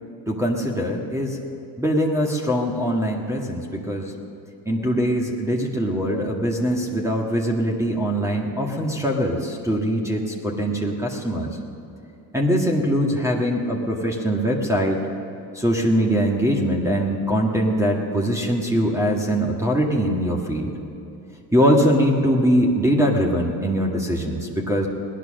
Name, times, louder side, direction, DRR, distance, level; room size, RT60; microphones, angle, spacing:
voice 1, 0.3-1.4 1.8-4.1 4.6-11.5 12.3-15.0 15.5-20.7 21.5-24.9, equal, 5° right, -1 dB, 1.9 m, -22 dB
17.0 x 11.0 x 6.5 m, 2.7 s
cardioid pair, 80°, 41 cm